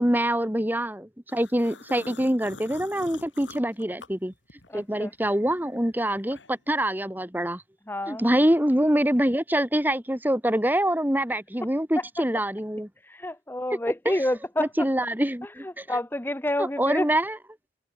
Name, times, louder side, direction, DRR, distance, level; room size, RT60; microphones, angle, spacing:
voice 1, 0.0-4.3 4.7-7.6 8.1-12.9 14.6-15.8 16.6-17.4, right 1 dB, 10° right, 1.7 m, -25 dB
sound 1, 1.3-4.8 5.2-6.7, left 3 dB, 75° left, 5.2 m, -46 dB
voice 2, 4.7-5.1 7.9-8.3 12.0-12.1 13.0-14.9 15.4-17.1, left 1 dB, 10° left, 0.8 m, -29 dB
head